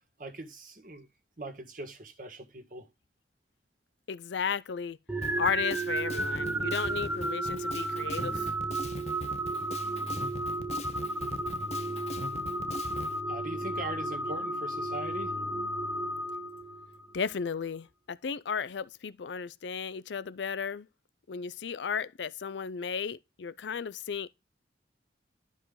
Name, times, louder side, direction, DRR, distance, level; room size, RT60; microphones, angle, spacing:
voice 1, 0.2-1.1 1.4-2.9 13.3-15.3, right 2 dB, 50° right, 1.6 m, -40 dB
voice 2, 4.1-5.0 5.4-8.5 17.1-20.9 21.3-24.3, left 6 dB, 85° left, 0.5 m, -34 dB
sound 1, 5.1-17.1, right 1 dB, 10° right, 0.5 m, -33 dB
Drum kit, 5.2-13.1, left 3 dB, 40° left, 0.6 m, -41 dB
11.5 x 5.0 x 3.8 m
head